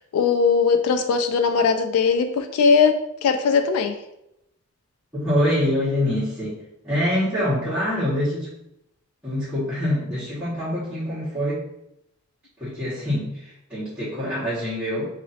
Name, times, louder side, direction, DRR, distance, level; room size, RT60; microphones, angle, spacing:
voice 1, 0.1-3.0 3.2-3.9, left 5 dB, 80° left, 7 dB, 0.3 m, -19 dB
voice 2, 5.1-6.5 6.8-8.5 9.2-11.6 12.6-15.1, left 1 dB, 5° right, -16 dB, 1.4 m, -25 dB
2.9 x 2.7 x 4.1 m, 0.83 s
head